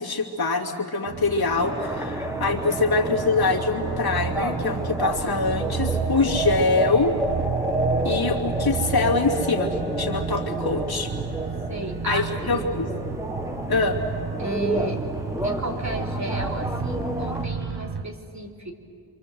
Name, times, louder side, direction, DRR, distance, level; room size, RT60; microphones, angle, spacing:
voice 1, 0.0-7.1 8.0-11.1 12.1-12.9 13.7-14.0, left 3 dB, 65° left, 0 dB, 2.8 m, -24 dB
sound 1, 1.1-18.0, right 6 dB, 90° right, 1.1 m, -31 dB
sound 2, 1.6-17.4, right 1 dB, 5° right, 1.7 m, -30 dB
voice 2, 11.7-12.6 14.4-15.0 15.4-18.7, right 1 dB, 45° right, 1 dB, 3.3 m, -33 dB
28.0 x 25.5 x 7.8 m, 2.3 s
wide cardioid pair, 100°, 40 cm